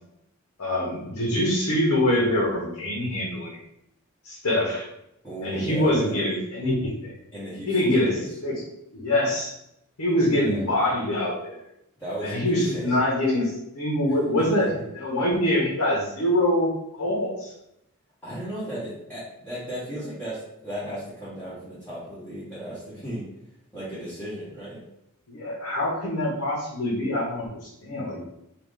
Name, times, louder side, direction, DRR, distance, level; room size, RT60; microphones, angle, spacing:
voice 1, 0.6-3.6 4.2-4.9 5.4-7.2 7.7-8.6 8.9-9.5 10.0-11.6 12.2-16.7 17.0-17.5 25.3-28.2, left 1 dB, 80° left, -4 dB, 1.0 m, -24 dB
voice 2, 5.2-6.3 7.3-8.2 10.3-10.6 12.0-12.9 14.1-14.2 14.6-14.7 18.2-23.3 23.7-24.8, right 1 dB, 10° left, -12 dB, 1.0 m, -35 dB
3.8 x 2.5 x 3.8 m, 0.80 s
head